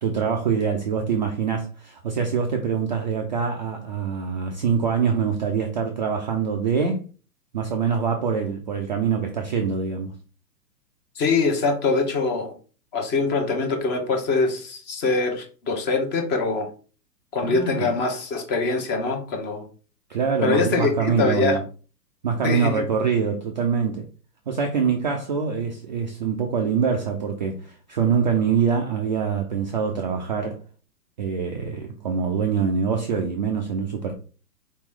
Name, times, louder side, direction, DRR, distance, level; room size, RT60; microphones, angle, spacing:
voice 1, 0.0-7.0 7.5-10.1 17.4-17.9 20.1-21.6 22.2-24.1 24.5-30.6 31.2-34.1, right 6 dB, 30° right, 0.3 m, -24 dB
voice 2, 11.2-12.5 12.9-16.7 17.3-19.7 20.4-21.6 22.4-22.8, left 3 dB, 20° left, 0.8 m, -23 dB
4.2 x 3.0 x 3.6 m
hypercardioid pair, 130°, 50 cm